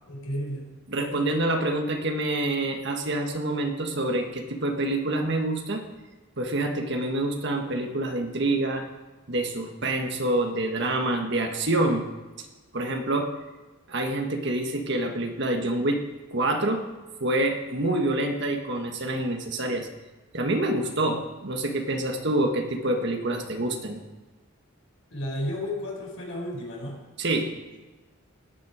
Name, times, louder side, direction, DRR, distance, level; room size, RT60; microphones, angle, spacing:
voice 1, 0.1-0.7 25.1-27.0, left 1 dB, 90° left, -1 dB, 5.0 m, -32 dB
voice 2, 0.9-5.8 6.4-8.9 9.3-12.1 12.7-13.3 13.9-16.0 16.3-16.8 17.2-19.9 20.3-24.0 27.2-27.5, right 1 dB, 55° right, 3 dB, 1.6 m, -26 dB
18.5 x 9.6 x 5.0 m, 1.2 s
head